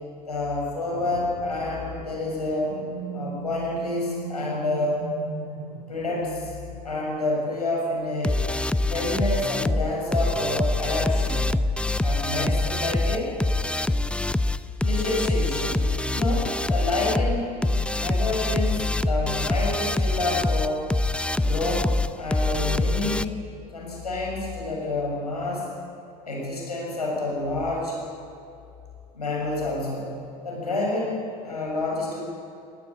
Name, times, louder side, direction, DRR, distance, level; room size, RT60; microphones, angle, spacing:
voice 1, 0.3-2.7 3.1-5.0 5.9-6.5 6.8-8.3 8.9-11.5 12.0-13.3 14.8-17.5 17.9-20.8 21.4-23.4 23.7-25.7 26.2-28.0 29.1-30.1 30.4-31.2 31.4-32.2, left 2 dB, 90° left, -2 dB, 6.8 m, -28 dB
sound 1, 0.9-8.6, right 3 dB, 85° right, 3.1 m, -39 dB
sound 2, 8.2-23.3, left 2 dB, 5° left, 0.7 m, -25 dB
20.5 x 19.0 x 8.6 m, 2.5 s
figure-of-eight pair, 65°, 20 cm